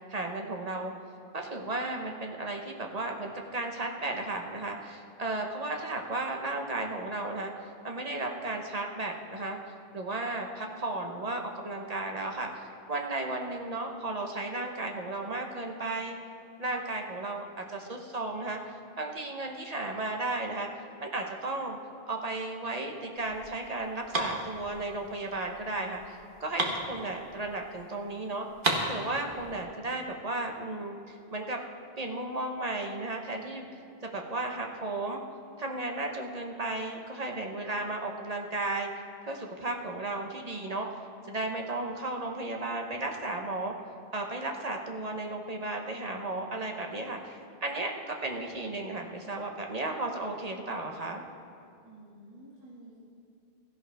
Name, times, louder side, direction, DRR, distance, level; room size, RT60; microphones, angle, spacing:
voice 1, 0.1-0.9 1.3-7.5 7.8-9.6 9.9-16.2 16.6-18.6 19.0-20.7 21.0-21.8 22.1-28.5 28.9-31.6 32.0-33.7 34.1-35.2 35.6-38.9 39.3-40.9 41.3-43.7 44.1-51.2, right 2 dB, 40° right, 2 dB, 1.0 m, -34 dB
sound 1, 23.2-27.7 28.0-28.1 28.3-29.6, right 2 dB, 55° right, 1.5 m, -33 dB
voice 2, 51.8-53.0, right 1 dB, 25° right, -8 dB, 2.3 m, -51 dB
16.0 x 13.5 x 3.4 m, 2.4 s
omnidirectional pair, 1.0 m